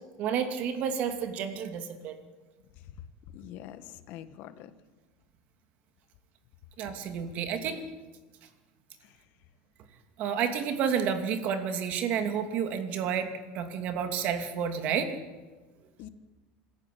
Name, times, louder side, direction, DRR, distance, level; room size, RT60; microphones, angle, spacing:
voice 1, 0.2-2.1 6.8-7.8 10.2-15.1, right 7 dB, 45° right, 7 dB, 2.6 m, -30 dB
voice 2, 3.3-4.7 9.0-9.2 16.0-16.1, left 11 dB, 55° left, 11 dB, 1.6 m, -45 dB
27.0 x 14.5 x 8.6 m, 1.3 s
supercardioid pair, 150°, 4 cm